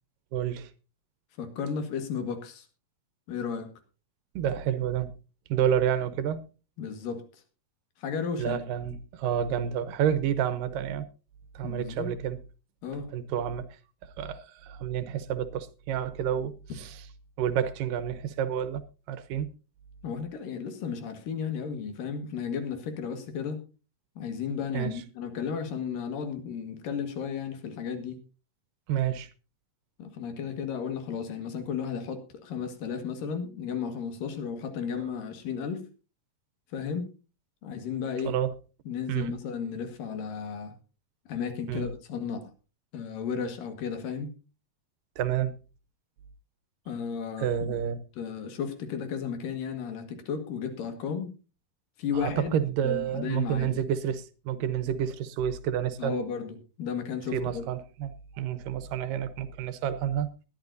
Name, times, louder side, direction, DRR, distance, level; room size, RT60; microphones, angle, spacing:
voice 1, 0.3-0.7 4.4-5.1 5.5-6.4 8.4-11.1 11.5-12.4 13.1-13.7 14.0-17.0 17.4-18.8 19.1-19.5 24.7-25.0 28.9-29.3 38.2-38.5 39.1-39.4 41.7-41.9 45.2-45.5 47.4-48.0 52.2-56.2 57.3-60.3, right 9 dB, 75° right, 2.5 m, -29 dB
voice 2, 1.4-2.7 3.3-3.7 6.8-7.4 8.0-8.6 11.6-12.1 12.8-13.1 20.0-23.6 24.2-28.2 30.0-35.9 36.7-37.1 37.6-38.3 38.9-40.7 41.3-42.5 42.9-44.3 46.9-47.8 48.2-51.3 52.0-52.5 52.8-53.8 56.0-57.6, left 6 dB, 75° left, 3.3 m, -34 dB
20.5 x 11.5 x 2.6 m
omnidirectional pair, 4.1 m